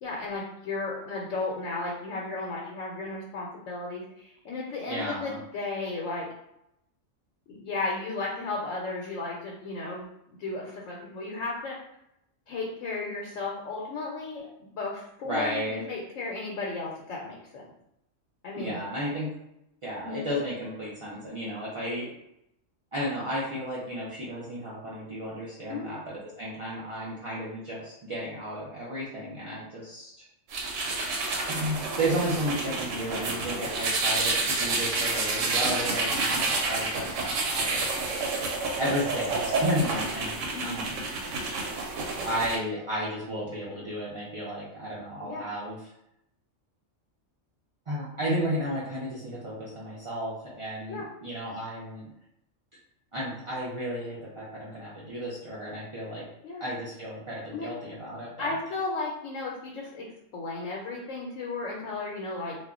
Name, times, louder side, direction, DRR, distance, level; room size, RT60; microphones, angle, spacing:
voice 1, 0.0-6.3 7.5-11.8 12.5-17.6 18.4-18.8 20.0-20.2 25.7-25.9 40.5-40.8 45.2-45.5 50.9-51.1 56.4-56.7 57.5-57.7 58.4-60.1 60.3-62.6, left 3 dB, 85° left, -3 dB, 1.0 m, -34 dB
voice 2, 4.9-5.4 15.2-15.9 18.5-19.3 19.8-22.1 22.9-30.2 31.5-37.9 38.8-41.0 42.2-45.9 47.9-52.1 53.1-56.2 56.6-58.6, equal, 50° right, -7 dB, 0.4 m, -33 dB
sound 1, 30.5-42.6, right 3 dB, 85° right, 1.0 m, -29 dB
2.3 x 2.1 x 3.6 m, 0.82 s
omnidirectional pair, 1.3 m